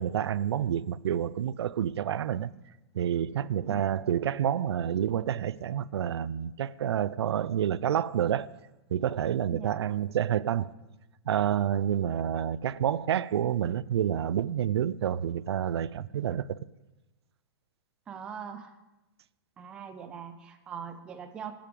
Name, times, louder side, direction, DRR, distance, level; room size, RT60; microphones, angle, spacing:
voice 1, 0.0-2.5 2.9-8.6 8.9-10.7 11.3-16.6, right 9 dB, 90° right, 0.5 m, -28 dB
voice 2, 9.5-9.8 18.1-18.7 19.6-21.6, right 7 dB, 5° right, 0.3 m, -42 dB
10.0 x 7.8 x 6.9 m
hypercardioid pair, 175°, 13 cm